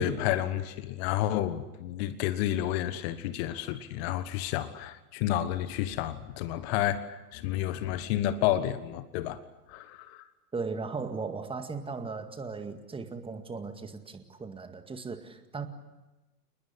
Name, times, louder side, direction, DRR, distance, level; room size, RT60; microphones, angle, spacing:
voice 1, 0.0-9.4 9.7-10.2, left 12 dB, 40° left, 1.4 m, -30 dB
voice 2, 10.5-15.7, right 4 dB, 10° right, 2.0 m, -37 dB
29.0 x 20.5 x 8.4 m
figure-of-eight pair, 95°, 47 cm